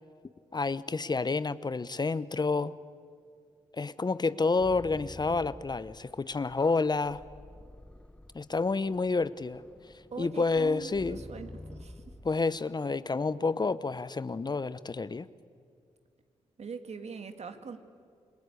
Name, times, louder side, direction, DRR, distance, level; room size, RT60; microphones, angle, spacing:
voice 1, 0.5-2.7 3.7-7.2 8.3-9.6 10.2-11.2 12.2-15.3, left 3 dB, 35° left, 16 dB, 0.8 m, -29 dB
sound 1, 4.6-12.4, left 1 dB, 10° left, 1.2 m, -49 dB
voice 2, 10.1-12.2 16.6-17.8, right 5 dB, 55° right, 7 dB, 2.2 m, -42 dB
28.5 x 22.5 x 8.4 m, 2.3 s
supercardioid pair, 45°, 13 cm